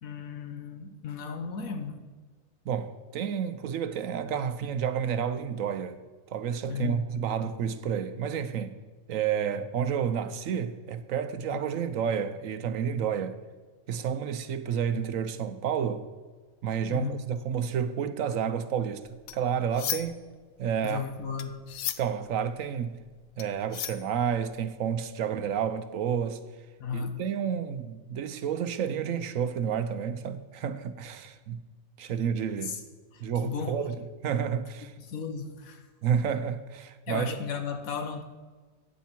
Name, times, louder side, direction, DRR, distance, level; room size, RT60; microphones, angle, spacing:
voice 1, 0.0-2.0 6.7-7.1 11.5-11.6 16.9-17.3 20.8-21.7 26.8-27.2 32.6-32.8 33.1-33.8 35.0-35.9 37.1-38.2, left 6 dB, 80° left, 1.5 m, -35 dB
voice 2, 2.7-6.0 6.3-8.8 9.1-13.4 13.9-16.0 16.6-20.2 20.6-21.0 22.0-23.0 23.4-26.4 26.9-31.6 32.0-32.7 33.2-34.0 34.2-34.9 36.0-37.4, right 8 dB, 75° right, 1.1 m, -30 dB
sound 1, 19.0-20.3 20.6-24.6, left 11 dB, 65° left, 0.8 m, -37 dB
14.0 x 9.1 x 4.4 m
omnidirectional pair, 1.5 m